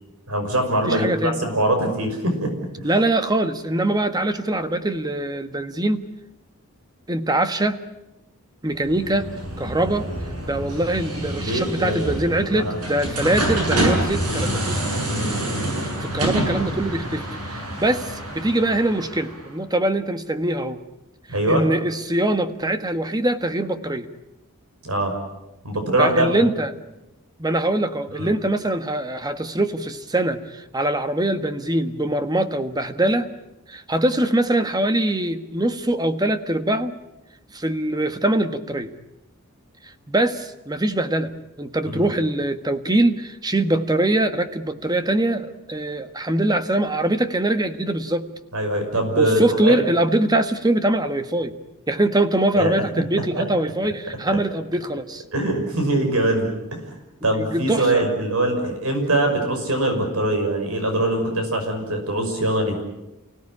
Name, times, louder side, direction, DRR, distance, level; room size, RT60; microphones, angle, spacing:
voice 1, 0.3-2.5 2.8-2.9 11.3-12.8 15.0-15.4 21.3-21.7 24.8-25.1 25.6-26.5 28.2-28.3 41.8-42.1 48.5-49.8 52.5-52.8 53.1-53.4 54.3-54.4 55.3-56.8 57.2-62.8, right 1 dB, 70° right, 4 dB, 5.9 m, -23 dB
voice 2, 0.9-1.4 2.8-6.0 7.1-7.8 8.6-9.3 9.6-10.1 10.4-14.9 15.8-20.8 21.5-24.1 26.0-26.7 27.4-33.3 33.7-36.9 37.5-38.9 40.1-41.3 41.6-48.3 49.2-51.5 51.9-55.2 57.4-58.0, right 1 dB, 20° right, 9 dB, 1.4 m, -23 dB
sound 1, 8.7-19.5, right 1 dB, 90° right, 7.4 m, -27 dB
29.5 x 17.5 x 9.9 m, 0.96 s
head